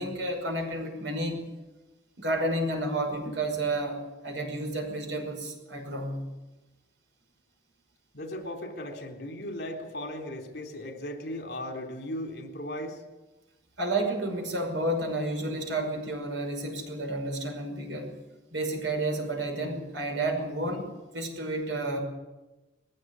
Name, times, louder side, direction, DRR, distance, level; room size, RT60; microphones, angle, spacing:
voice 1, 0.0-1.4 2.2-6.2 13.8-18.1 18.5-22.0, right 1 dB, 85° right, 4 dB, 5.6 m, -31 dB
voice 2, 8.1-13.0, left 1 dB, 60° left, 4 dB, 3.5 m, -37 dB
20.5 x 16.0 x 9.7 m, 1.1 s
head